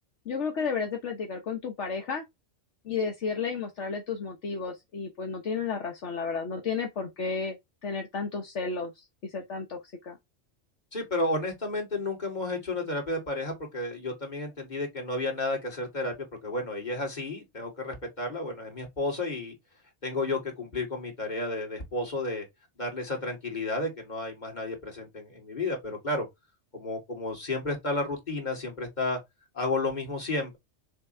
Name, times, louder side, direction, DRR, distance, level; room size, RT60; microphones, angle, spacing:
voice 1, 0.2-2.2 2.8-7.6 7.8-10.2, left 5 dB, 65° left, 1.4 m, -32 dB
voice 2, 10.9-16.2 16.4-19.5 20.0-22.5 22.8-26.3 26.7-29.2 29.5-30.6, left 2 dB, 35° left, 2.7 m, -32 dB
6.8 x 3.6 x 4.4 m
omnidirectional pair, 1.3 m